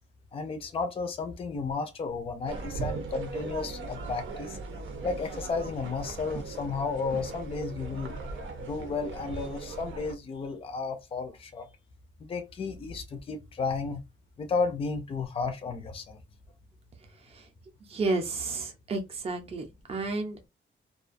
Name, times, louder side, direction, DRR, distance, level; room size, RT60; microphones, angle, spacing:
voice 1, 0.3-4.6 5.0-8.2 8.6-11.7 12.2-14.0 14.4-16.2, left 4 dB, 30° left, 0.4 m, -33 dB
sound 1, 2.5-10.1, right 4 dB, 85° right, 0.7 m, -38 dB
voice 2, 17.9-20.5, right 3 dB, 30° right, 0.5 m, -31 dB
2.3 x 2.2 x 2.5 m
wide cardioid pair, 170°, 20 cm